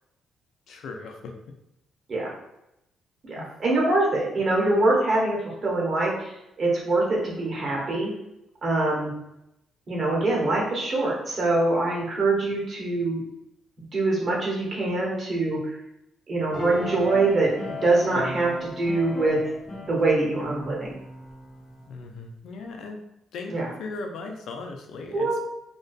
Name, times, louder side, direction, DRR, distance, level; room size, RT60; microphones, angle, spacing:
voice 1, 0.7-1.4 3.4-3.5 21.9-23.0 23.3-23.5 23.8-25.3, left 3 dB, 75° left, 3 dB, 0.3 m, -37 dB
voice 2, 3.2-8.1 8.6-9.1 9.9-13.2 13.9-15.8 16.3-17.5 17.8-19.4 19.8-20.9 23.5-23.7 25.1-25.4, right 2 dB, 45° right, -4 dB, 1.0 m, -24 dB
sound 1, 16.5-21.9, left 1 dB, 30° left, 1.0 m, -36 dB
2.5 x 2.2 x 2.3 m, 0.86 s
cardioid pair, 90°, 0 cm